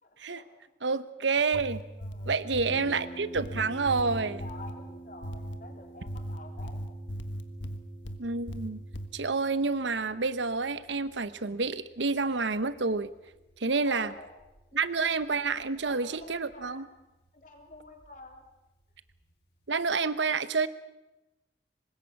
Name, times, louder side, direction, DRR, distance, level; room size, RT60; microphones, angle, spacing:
voice 1, 0.0-0.5 1.9-2.6 4.4-6.8 7.5-7.8 13.8-14.3 14.7-15.4 15.8-17.1 17.3-18.5, left 2 dB, 45° left, 2 dB, 3.8 m, -49 dB
voice 2, 0.8-1.8 2.3-4.4 8.2-8.8 9.1-13.1 13.6-14.1 14.7-16.9 19.7-20.7, right 4 dB, 85° right, 14 dB, 0.9 m, -29 dB
sound 1, 1.4-2.8 3.4-4.8 5.2-5.6 6.1-8.2 8.5-9.1, equal, 90° left, 1.6 m, -37 dB
Harp, 2.7-20.1, right 2 dB, 70° left, 5.8 m, -51 dB
24.5 x 20.5 x 6.0 m, 0.98 s
head